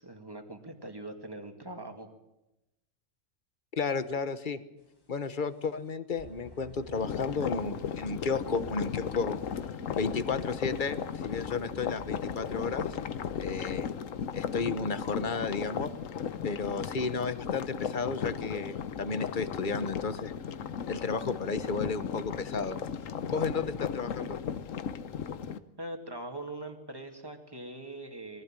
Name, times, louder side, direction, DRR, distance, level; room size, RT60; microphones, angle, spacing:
voice 1, 0.0-2.1 25.8-28.4, right 2 dB, 20° right, 5 dB, 2.4 m, -42 dB
voice 2, 3.8-4.6 5.1-9.4 10.0-13.0 13.4-13.9 14.3-15.9 16.4-20.3 20.9-22.8 23.3-24.4, left 4 dB, 40° left, 12 dB, 1.2 m, -33 dB
sound 1, 4.9-5.3 5.7-5.8 6.2-13.9, left 3 dB, 20° left, 1.3 m, -52 dB
sound 2, 6.9-25.6, left 7 dB, 85° left, 1.3 m, -36 dB
22.0 x 15.5 x 9.0 m, 0.95 s
omnidirectional pair, 1.3 m